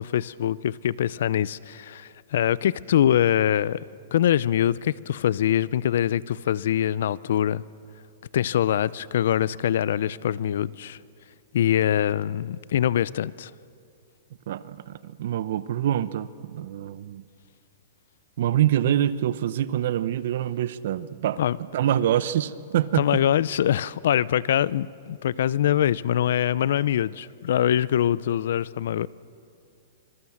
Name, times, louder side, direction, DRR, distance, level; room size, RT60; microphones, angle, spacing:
voice 1, 0.0-3.8 4.1-7.6 8.3-11.0 11.5-13.5 21.4-21.6 22.9-29.1, left 10 dB, 65° left, 0.5 m, -23 dB
voice 2, 14.5-17.2 18.4-21.4 21.7-23.0, right 11 dB, 55° right, 0.8 m, -25 dB
25.5 x 22.5 x 7.3 m
hypercardioid pair, 170°, 0 cm